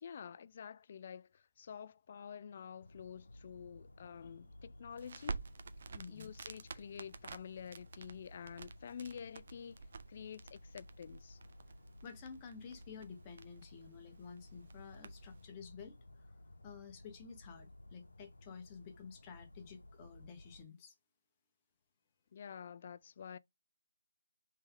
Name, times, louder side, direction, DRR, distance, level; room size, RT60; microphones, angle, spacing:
voice 1, 0.0-5.4 6.1-9.8 10.1-11.4 22.3-23.4, left 7 dB, 35° left, 0.3 m, -49 dB
sound 1, 2.8-20.6, left 1 dB, 90° left, 0.8 m, -57 dB
Crackle, 4.9-15.5, right 4 dB, 45° right, 0.6 m, -50 dB
voice 2, 5.9-6.3 12.0-16.0 16.6-20.9, left 6 dB, 20° left, 0.9 m, -52 dB
3.4 x 3.3 x 4.6 m
figure-of-eight pair, 165°, 0 cm